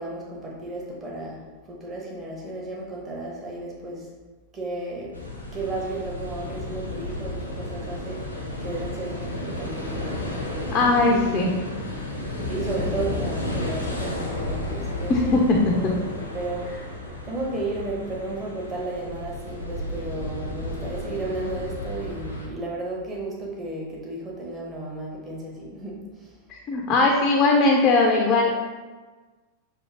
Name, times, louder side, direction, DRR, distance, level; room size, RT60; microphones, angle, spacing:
voice 1, 0.0-4.1 4.5-5.2 5.5-10.2 10.9-11.7 12.4-26.3, right 2 dB, 20° right, -3 dB, 1.0 m, -34 dB
sound 1, 5.1-22.5, left 1 dB, 85° left, 0.7 m, -33 dB
voice 2, 10.7-11.5 15.1-15.7 26.7-28.5, left 3 dB, 35° left, 0 dB, 0.5 m, -19 dB
5.5 x 2.7 x 2.9 m, 1.3 s
figure-of-eight pair, 90°, 0 cm